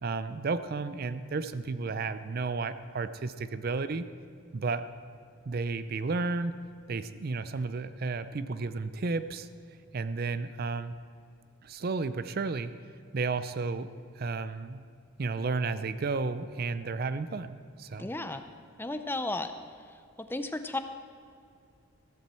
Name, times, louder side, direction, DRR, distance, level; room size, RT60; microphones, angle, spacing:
voice 1, 0.0-4.1 4.5-4.8 5.5-6.5 6.9-9.5 9.9-11.0 11.6-12.7 13.1-14.8 15.2-18.1, right 4 dB, 45° right, 13 dB, 0.4 m, -32 dB
voice 2, 18.0-18.4 18.8-19.5 20.3-20.8, left 2 dB, 10° left, 8 dB, 0.5 m, -33 dB
15.0 x 13.5 x 4.3 m, 2.3 s
head